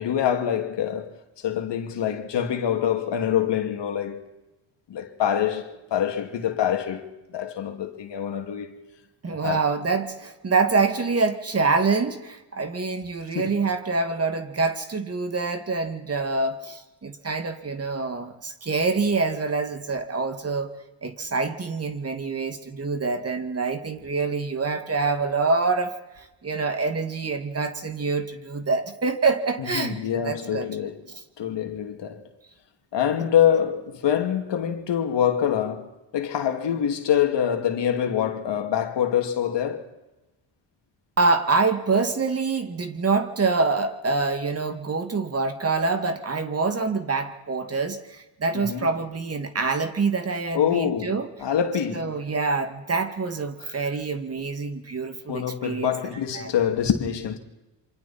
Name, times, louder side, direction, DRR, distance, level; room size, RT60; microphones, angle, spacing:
voice 1, 0.0-4.2 4.9-7.1 7.3-8.7 9.3-9.6 13.3-13.6 29.6-31.0 31.4-32.2 32.9-39.9 48.5-48.9 50.5-52.2 53.6-53.7 55.3-57.4, left 9 dB, 60° left, 2.6 m, -25 dB
voice 2, 9.2-20.7 21.0-31.2 41.2-51.3 51.9-55.9 56.3-56.5, right 4 dB, 30° right, 2.3 m, -26 dB
27.5 x 25.5 x 4.3 m
cardioid pair, 95°, 47 cm